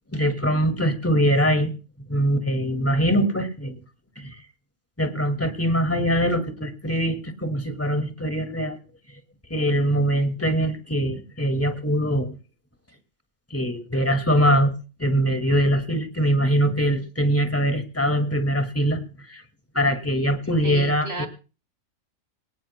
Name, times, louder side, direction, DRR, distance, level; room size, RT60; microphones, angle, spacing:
voice 1, 0.1-1.7 2.1-3.8 4.2-4.4 5.0-8.8 9.5-12.4 13.5-14.7 15.0-19.0 19.3-19.4 19.7-21.3, equal, 10° left, 7 dB, 2.0 m, -22 dB
voice 2, 20.6-21.3, equal, 30° right, 6 dB, 2.9 m, -32 dB
27.0 x 18.5 x 2.2 m, 0.36 s
omnidirectional pair, 1.4 m